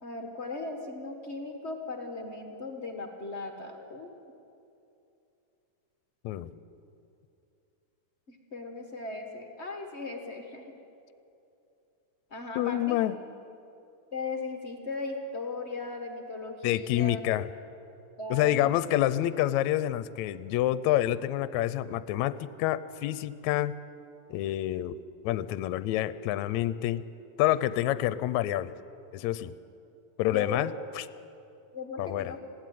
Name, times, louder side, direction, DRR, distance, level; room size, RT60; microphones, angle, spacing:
voice 1, 0.0-4.1 8.3-10.6 12.3-13.0 14.1-17.2 18.2-18.7 30.3-30.7 31.7-32.4, left 3 dB, 45° left, 4 dB, 0.8 m, -37 dB
voice 2, 6.2-6.6 12.6-13.2 16.6-17.5 18.3-23.8 24.3-25.0 25.2-27.0 27.4-28.7 29.1-29.5 30.2-30.7 31.0-31.1 32.0-32.3, left 13 dB, 75° left, 15 dB, 1.8 m, -27 dB
20.5 x 15.5 x 9.2 m, 2.7 s
omnidirectional pair, 3.6 m